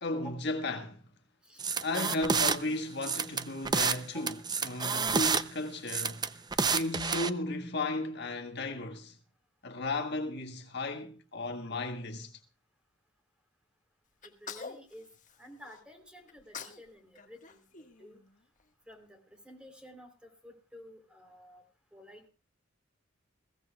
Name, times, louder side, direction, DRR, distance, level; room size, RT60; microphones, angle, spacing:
voice 1, 0.0-1.0 1.8-4.3 4.6-6.3 6.6-9.1 9.6-12.3, left 2 dB, 60° left, 1.6 m, -35 dB
sound 1, 1.6-2.6 3.0-4.0 4.3-5.4 5.9-7.3, right 5 dB, 20° right, 0.6 m, -29 dB
Sneeze, 14.2-15.8 16.3-16.9 17.1-18.6, left 6 dB, 40° left, 1.6 m, -46 dB
voice 2, 14.2-15.1 15.4-18.2 18.9-21.6 21.9-22.3, equal, 5° right, 3.6 m, -52 dB
22.0 x 16.0 x 2.4 m
head